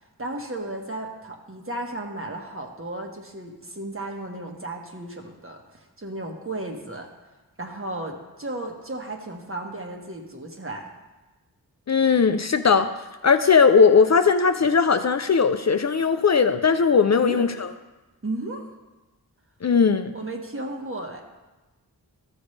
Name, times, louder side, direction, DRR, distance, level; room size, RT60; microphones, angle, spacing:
voice 1, 0.2-7.1 7.6-10.9 17.2-17.5 18.2-18.7 20.1-21.2, right 2 dB, 35° right, 2 dB, 1.5 m, -34 dB
voice 2, 11.9-12.9 13.2-17.7 19.6-20.1, left 5 dB, 45° left, 9 dB, 0.5 m, -18 dB
13.5 x 7.1 x 3.3 m, 1.1 s
wide cardioid pair, 60°, 38 cm